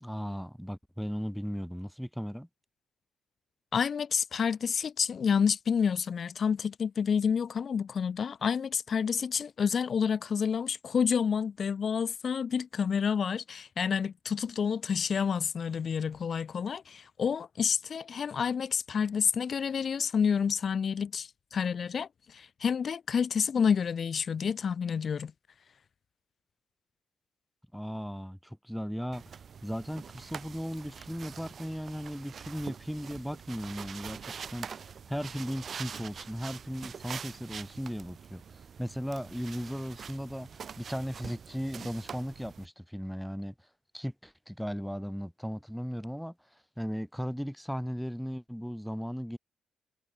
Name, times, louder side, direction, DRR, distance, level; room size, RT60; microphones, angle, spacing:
voice 1, 0.0-2.5 27.7-29.3 29.6-43.5 43.9-46.3 46.8-49.4, equal, ahead, 0.6 m, -37 dB
voice 2, 3.7-25.3, left 6 dB, 50° left, 0.4 m, -29 dB
sound 1, 29.1-42.7, right 7 dB, 50° right, 1.0 m, -45 dB
cardioid pair, 90°, 0 cm